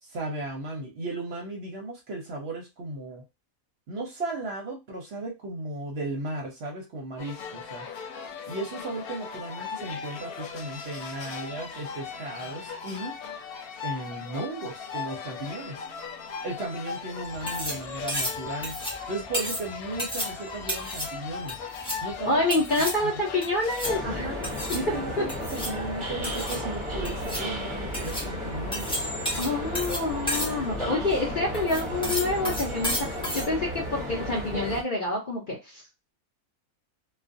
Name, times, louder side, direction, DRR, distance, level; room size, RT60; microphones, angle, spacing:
voice 1, 0.0-3.2 3.9-7.9 8.5-13.2 13.8-15.8 16.4-18.8 19.1-21.6 22.0-22.6 23.0-23.1 24.0-24.4 24.7-28.9, right 2 dB, 55° right, 1 dB, 0.8 m, -35 dB
sound 1, 7.2-24.0, left 6 dB, 85° left, 1.1 m, -38 dB
sound 2, 17.2-33.5, equal, 5° left, 0.4 m, -33 dB
voice 2, 22.2-24.2 29.4-35.8, left 2 dB, 50° left, -2 dB, 0.7 m, -27 dB
sound 3, 23.8-34.8, equal, 25° right, 0.7 m, -33 dB
2.4 x 2.3 x 2.5 m, 0.23 s
omnidirectional pair, 1.5 m